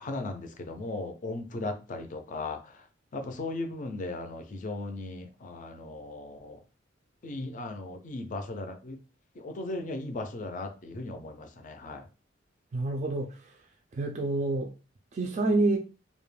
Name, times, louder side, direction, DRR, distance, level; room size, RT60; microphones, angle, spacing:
voice 1, 0.0-2.9 3.1-6.6 7.2-9.0 9.3-12.0, left 2 dB, 40° left, 0.4 m, -37 dB
voice 2, 12.7-13.6 13.9-14.7 15.1-15.8, right 2 dB, 40° right, 0.3 m, -28 dB
2.3 x 2.1 x 3.1 m
head